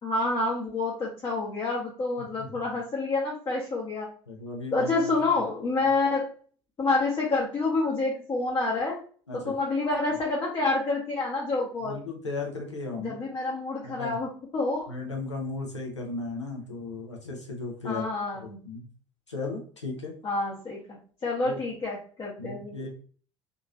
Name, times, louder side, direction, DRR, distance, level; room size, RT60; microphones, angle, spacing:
voice 1, 0.0-4.1 4.7-6.3 6.8-9.0 9.3-12.0 13.0-14.9 17.8-18.6 20.2-22.7, left 3 dB, 30° left, -4 dB, 0.9 m, -28 dB
voice 2, 2.4-2.7 4.3-5.4 5.8-5.9 9.3-9.5 11.8-13.2 13.8-14.2 14.9-18.0 18.4-18.9 19.3-20.1 21.4-21.6 22.4-22.9, left 3 dB, 85° left, 0 dB, 0.7 m, -36 dB
2.8 x 2.5 x 2.4 m, 0.43 s
figure-of-eight pair, 65°, 15 cm